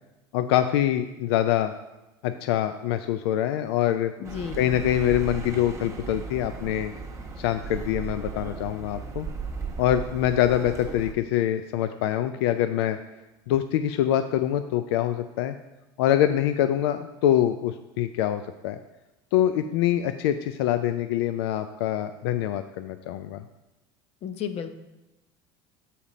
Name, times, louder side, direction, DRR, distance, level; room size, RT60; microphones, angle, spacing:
voice 1, 0.3-1.7 2.2-4.1 4.6-6.9 7.4-9.3 9.8-13.0 13.5-15.6 16.0-18.8 19.3-23.4, left 11 dB, 80° left, 9 dB, 0.4 m, -25 dB
voice 2, 4.2-4.7 24.2-24.8, left 8 dB, 50° left, 9 dB, 0.7 m, -33 dB
Accelerating revving vroom, 4.2-11.1, right 5 dB, 20° right, 1.1 m, -36 dB
7.0 x 4.2 x 5.0 m, 1.0 s
supercardioid pair, 100°, 13 cm